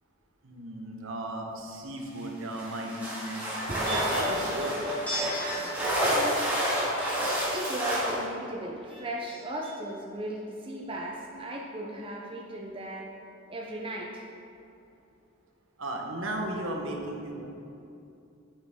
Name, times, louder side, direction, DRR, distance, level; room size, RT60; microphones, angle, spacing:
voice 1, 0.4-4.8 15.8-17.5, right 1 dB, 70° right, 1 dB, 1.0 m, -35 dB
sound 1, 2.5-8.2, equal, 10° right, 2.0 m, -29 dB
sound 2, 2.9-8.1 8.4-9.4 9.6-9.7, equal, 5° left, 1.9 m, -37 dB
voice 2, 7.5-13.1 13.5-14.3, right 1 dB, 25° right, -2 dB, 0.6 m, -36 dB
8.9 x 6.5 x 3.7 m, 2.6 s
head